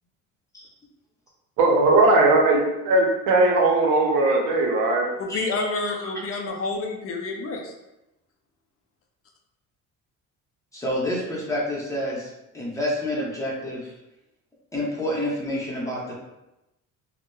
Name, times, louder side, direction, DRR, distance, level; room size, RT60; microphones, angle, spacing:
voice 1, 1.6-5.2, right 2 dB, 90° right, 0 dB, 0.6 m, -19 dB
voice 2, 5.2-7.7, left 3 dB, 45° left, 1 dB, 0.4 m, -29 dB
voice 3, 10.7-13.9 14.7-16.1, left 1 dB, 10° left, -5 dB, 0.8 m, -28 dB
2.7 x 2.1 x 2.2 m, 0.93 s
cardioid pair, 95°, 33 cm